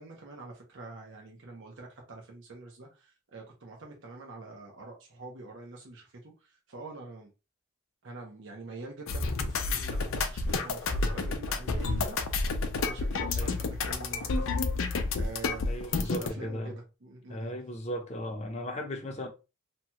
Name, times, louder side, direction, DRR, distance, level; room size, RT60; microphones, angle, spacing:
voice 1, 0.0-7.3 8.0-12.2 12.8-17.5, right 2 dB, 60° right, 0.7 m, -45 dB
sound 1, 9.1-16.3, left 3 dB, 75° left, 0.5 m, -30 dB
voice 2, 15.6-16.7 17.3-19.3, equal, 30° left, 0.7 m, -36 dB
2.9 x 2.3 x 2.8 m
head